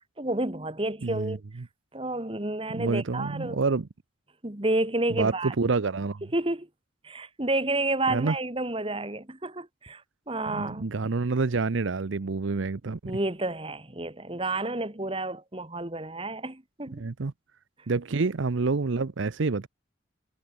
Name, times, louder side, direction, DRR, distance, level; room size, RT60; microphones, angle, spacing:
voice 1, 0.2-1.4 1.9-3.6 4.4-5.5 6.3-6.7 7.0-10.9 13.1-17.1, right 2 dB, 25° right, 1.6 m, -30 dB
voice 2, 1.0-1.4 2.7-3.9 5.1-6.2 8.1-8.4 10.5-13.1 16.9-17.3 17.9-19.7, right 4 dB, 70° right, 0.7 m, -28 dB
head